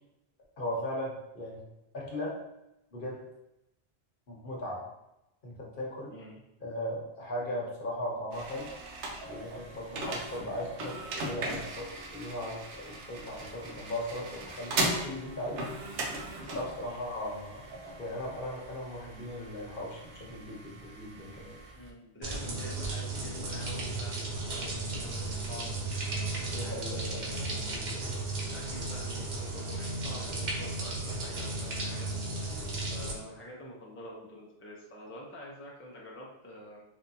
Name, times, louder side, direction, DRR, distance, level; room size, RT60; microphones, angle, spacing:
voice 1, 0.6-1.6 1.9-2.3 2.9-3.2 4.3-4.8 5.4-6.2 6.6-8.7 9.3-15.7 16.5-17.7 18.0-21.6 26.5-27.2, left 1 dB, 55° left, -3 dB, 1.0 m, -38 dB
voice 2, 6.1-6.4 9.9-10.1 16.0-16.2 16.9-17.1 21.7-25.7 26.8-32.5 32.8-36.8, left 1 dB, 15° left, -3 dB, 0.4 m, -47 dB
sound 1, 8.3-21.9, right 2 dB, 90° right, 1.0 m, -39 dB
sound 2, 22.2-33.1, right 2 dB, 50° right, 0.6 m, -35 dB
3.4 x 2.7 x 2.6 m, 0.89 s
omnidirectional pair, 1.1 m